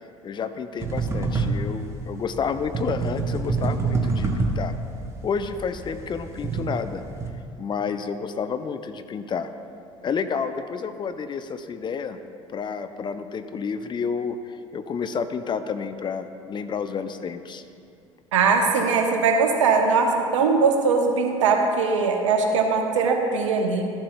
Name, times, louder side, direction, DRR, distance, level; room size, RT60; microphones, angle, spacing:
voice 1, 0.2-4.7 5.2-7.0 7.6-9.5 10.0-12.2 12.5-17.6, left 6 dB, 30° left, 10 dB, 0.5 m, -30 dB
sound 1, 0.8-7.3, right 3 dB, 15° right, 1.1 m, -27 dB
voice 2, 18.3-23.9, right 4 dB, 75° right, 4 dB, 0.8 m, -21 dB
13.0 x 7.3 x 2.2 m, 2.4 s
figure-of-eight pair, 60°, 16 cm